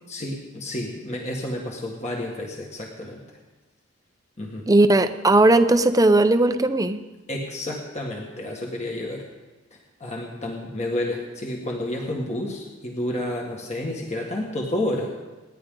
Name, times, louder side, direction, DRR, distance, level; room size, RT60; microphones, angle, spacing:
voice 1, 0.1-3.2 4.4-4.6 7.3-9.2 10.0-15.1, left 1 dB, 35° left, -1 dB, 1.7 m, -30 dB
voice 2, 4.7-7.0, right 2 dB, 20° right, 10 dB, 0.7 m, -17 dB
28.0 x 10.5 x 3.9 m, 1.2 s
head